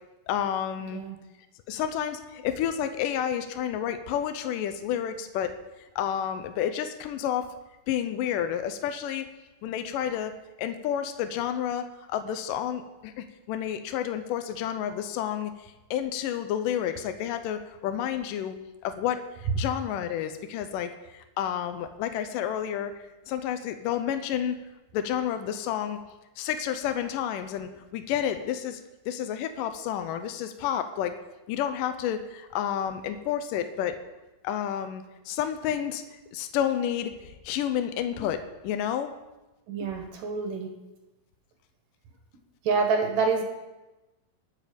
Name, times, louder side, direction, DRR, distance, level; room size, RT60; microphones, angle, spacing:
voice 1, 0.3-1.0 1.7-5.5 6.0-7.5 7.9-9.3 9.6-10.3 10.6-18.6 18.8-24.6 24.9-26.0 26.4-28.8 29.1-31.1 31.5-33.9 34.4-36.0 36.3-39.1 39.8-39.9, left 9 dB, 80° left, 8 dB, 2.0 m, -30 dB
voice 2, 39.7-40.7 42.7-43.4, right 4 dB, 65° right, 3 dB, 2.7 m, -26 dB
20.5 x 7.5 x 5.2 m, 1.1 s
omnidirectional pair, 4.5 m